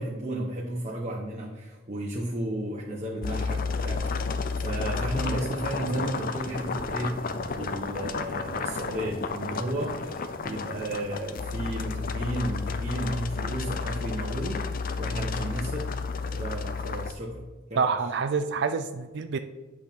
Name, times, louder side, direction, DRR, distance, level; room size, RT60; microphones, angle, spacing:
voice 1, 0.0-14.6 15.0-15.9 16.3-17.4 17.7-17.9, right 1 dB, 35° right, -2 dB, 1.0 m, -33 dB
sound 1, 3.2-17.1, left 4 dB, 45° left, 0.5 m, -32 dB
voice 2, 17.8-19.4, right 5 dB, 60° right, 9 dB, 0.4 m, -27 dB
9.8 x 5.9 x 3.6 m, 1.2 s
head